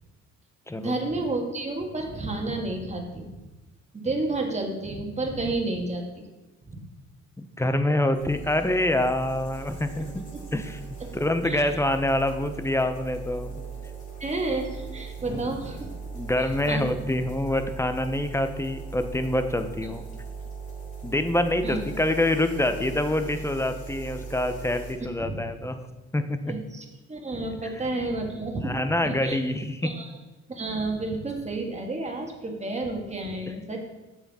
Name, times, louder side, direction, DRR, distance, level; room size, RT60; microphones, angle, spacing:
voice 1, 0.8-3.4 3.9-6.3 6.7-6.8 11.4-11.8 14.2-15.9 16.4-16.9 19.8-19.9 21.6-21.8 25.2-25.4 26.5-29.4 29.8-30.1 30.5-33.8, right 2 dB, 20° right, 2 dB, 1.6 m, -31 dB
voice 2, 7.4-10.2 10.5-10.8 11.1-13.5 15.3-15.4 16.1-20.0 21.0-25.8 26.1-26.4 28.6-29.9 33.5-33.6, left 1 dB, 10° left, 8 dB, 0.6 m, -26 dB
sound 1, 8.1-24.9, right 5 dB, 25° left, 2.6 m, -39 dB
7.2 x 7.1 x 4.1 m, 1.1 s
cardioid pair, 90°, 30 cm